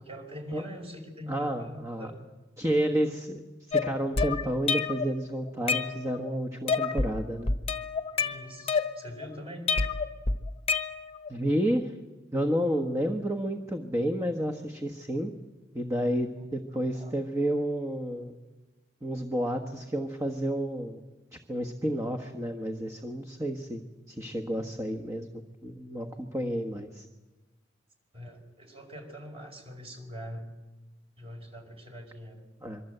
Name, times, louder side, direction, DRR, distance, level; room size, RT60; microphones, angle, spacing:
voice 1, 0.0-2.1 6.7-6.9 8.1-9.8 16.9-17.1 28.1-30.5 31.2-32.4, equal, 30° right, 3 dB, 4.9 m, -43 dB
voice 2, 1.3-2.1 2.6-7.5 11.3-11.9 12.3-15.3 15.7-18.4 19.0-21.0 21.3-25.3 25.6-27.1 32.6-32.8, right 1 dB, 15° right, 5 dB, 1.3 m, -30 dB
sound 1, 3.7-5.1 5.5-6.3 6.7-7.1 7.5-9.3 9.7-11.3, left 4 dB, 35° left, 1.1 m, -28 dB
26.0 x 23.5 x 8.0 m, 1.2 s
head